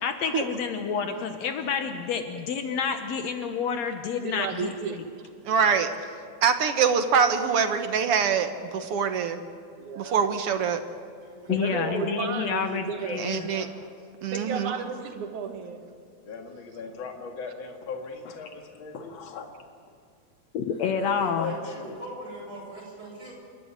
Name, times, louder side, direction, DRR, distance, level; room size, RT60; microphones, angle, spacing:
voice 1, 0.0-5.0 11.5-13.4 20.5-21.5, left 6 dB, 70° left, 6 dB, 2.2 m, -29 dB
voice 2, 4.2-5.0 5.6-5.8 9.8-10.2 11.5-13.3 14.3-15.8, right 6 dB, 85° right, 5 dB, 3.1 m, -33 dB
voice 3, 5.5-5.9 6.4-9.4 10.0-10.8 13.2-13.7 14.2-14.7, right 6 dB, 60° right, 8 dB, 1.8 m, -24 dB
voice 4, 11.2-13.7 14.6-14.8 20.7-23.3, right 1 dB, 40° right, -3 dB, 8.3 m, -44 dB
voice 5, 16.3-19.5 21.4-22.0, left 4 dB, 45° left, 3 dB, 2.6 m, -38 dB
29.0 x 13.0 x 9.8 m, 2.3 s
omnidirectional pair, 3.3 m